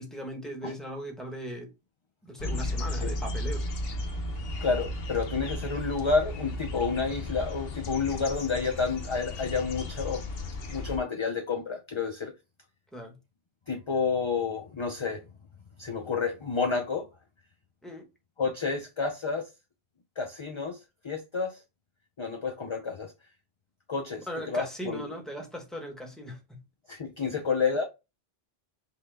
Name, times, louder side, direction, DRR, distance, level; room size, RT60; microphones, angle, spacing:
voice 1, 0.0-1.7 2.2-3.7 12.9-13.2 17.8-18.1 24.3-26.6 27.3-27.4, equal, ahead, 1.0 m, -38 dB
sound 1, 2.4-11.0, left 1 dB, 65° left, 1.0 m, -34 dB
voice 2, 4.6-10.3 10.7-12.3 13.7-15.2 15.8-17.1 18.4-19.5 20.2-20.8 21.0-21.6 22.2-23.1 23.9-25.0 26.9-27.8, left 4 dB, 40° left, 0.4 m, -30 dB
5.7 x 2.2 x 3.3 m
omnidirectional pair, 1.1 m